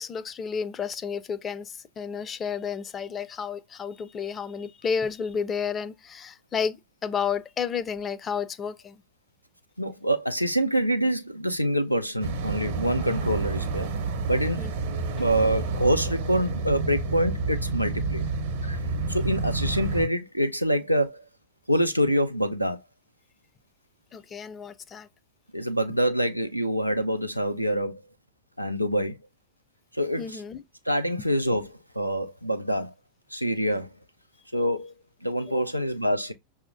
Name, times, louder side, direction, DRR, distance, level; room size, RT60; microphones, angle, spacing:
voice 1, 0.0-9.0 14.6-14.7 24.1-25.1 30.2-30.6 31.2-31.3 35.6-35.7, left 6 dB, 25° left, 0.4 m, -31 dB
voice 2, 9.8-13.9 14.3-14.7 15.2-18.2 18.6-18.8 19.1-21.2 21.7-22.8 25.5-28.0 28.6-29.2 29.9-30.3 30.9-31.7 31.9-32.9 33.3-33.9 34.5-34.9 35.2-36.3, equal, 90° right, 0.5 m, -26 dB
sound 1, 12.2-20.1, right 3 dB, 55° right, 0.8 m, -29 dB
5.7 x 2.7 x 2.5 m
figure-of-eight pair, 90°, 0 cm